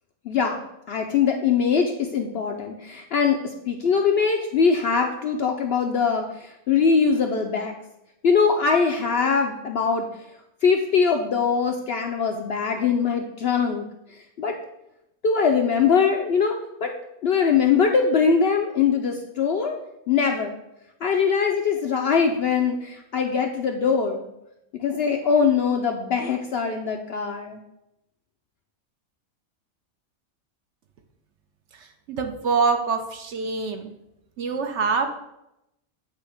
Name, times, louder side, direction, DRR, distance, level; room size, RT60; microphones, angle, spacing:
voice 1, 0.3-0.6 0.9-7.7 8.2-10.1 10.6-13.8 14.1-14.6 15.2-16.6 16.8-16.9 17.2-19.8 20.1-20.5 21.0-24.2 24.7-27.6, left 6 dB, 65° left, 3 dB, 0.6 m, -22 dB
voice 2, 32.1-33.9 34.4-35.1, right 5 dB, 60° right, 5 dB, 0.9 m, -24 dB
8.4 x 2.9 x 4.9 m, 0.86 s
omnidirectional pair, 1.5 m